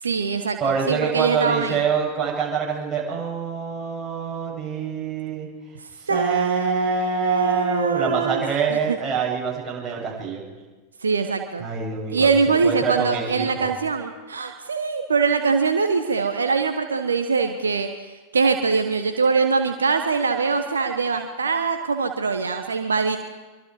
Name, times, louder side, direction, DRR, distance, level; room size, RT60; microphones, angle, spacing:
voice 1, 0.0-1.8 5.8-8.4 8.7-9.0 11.0-11.7 12.1-23.2, right 4 dB, 70° right, 6 dB, 1.3 m, -23 dB
voice 2, 0.6-5.5 6.1-10.4 11.6-13.7, right 6 dB, 20° right, -3 dB, 7.8 m, -26 dB
25.0 x 24.5 x 4.9 m, 1.3 s
figure-of-eight pair, 90°, 0 cm